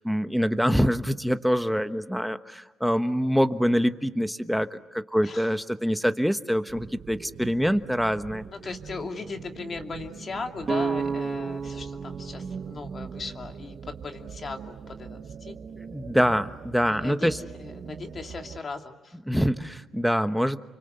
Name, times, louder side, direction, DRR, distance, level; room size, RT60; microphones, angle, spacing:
voice 1, 0.0-8.5 15.9-17.4 19.3-20.6, equal, ahead, 10 dB, 1.2 m, -25 dB
voice 2, 5.2-5.5 8.5-15.6 16.9-17.3 17.6-19.2, left 4 dB, 40° left, 4 dB, 2.5 m, -38 dB
sound 1, 6.7-18.6, right 6 dB, 55° right, 1.4 m, -42 dB
sound 2, 10.7-14.5, right 5 dB, 35° right, 1.8 m, -32 dB
29.5 x 24.5 x 8.0 m, 1.1 s
cardioid pair, 90°, 0 cm